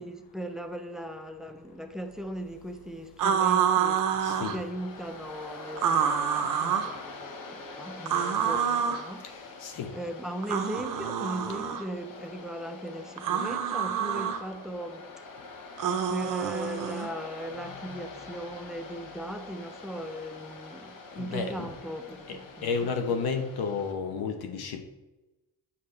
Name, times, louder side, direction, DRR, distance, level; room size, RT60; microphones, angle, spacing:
voice 1, 0.0-15.2 16.1-23.0, right 1 dB, ahead, 0.5 m, -38 dB
sound 1, 3.2-4.6 5.8-6.9 8.1-9.1 10.4-11.8 13.2-14.4 15.8-17.1, right 8 dB, 60° right, 0.8 m, -27 dB
Waves surf, 4.1-23.9, left 3 dB, 60° left, 1.1 m, -45 dB
voice 2, 4.2-4.5 9.6-9.9 17.9-18.0 21.2-21.7 22.3-24.8, left 5 dB, 85° left, 1.0 m, -32 dB
8.6 x 5.7 x 3.2 m
cardioid pair, 145°, 37 cm